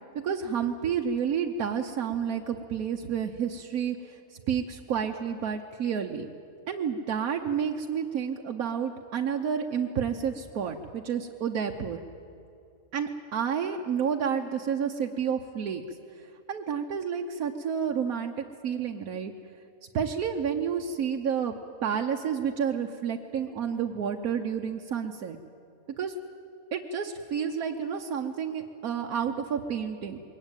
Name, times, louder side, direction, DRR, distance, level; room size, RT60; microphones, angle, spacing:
voice 1, 0.2-6.3 6.7-12.0 12.9-15.8 16.5-19.3 19.9-21.5 21.8-25.4 26.0-26.1 26.7-30.2, right 7 dB, 80° right, 2 dB, 1.4 m, -30 dB
22.0 x 17.5 x 9.0 m, 2.6 s
omnidirectional pair, 1.5 m